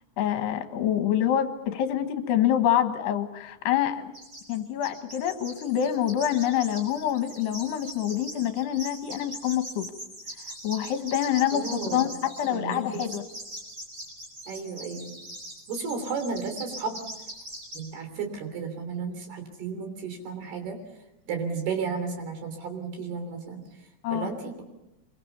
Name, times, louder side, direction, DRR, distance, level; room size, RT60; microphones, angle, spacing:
voice 1, 0.2-4.1 4.5-9.9 10.6-13.2 24.0-24.3, left 10 dB, 75° left, 8 dB, 3.4 m, -26 dB
sound 1, 4.1-4.6 4.8-17.8, right 1 dB, 20° right, 6.3 m, -41 dB
voice 2, 11.5-12.2 12.5-13.1 14.5-15.2 15.7-17.0 17.7-20.8 21.3-24.6, right 5 dB, 65° right, 6 dB, 5.1 m, -33 dB
25.0 x 23.0 x 7.1 m, 0.92 s
omnidirectional pair, 5.0 m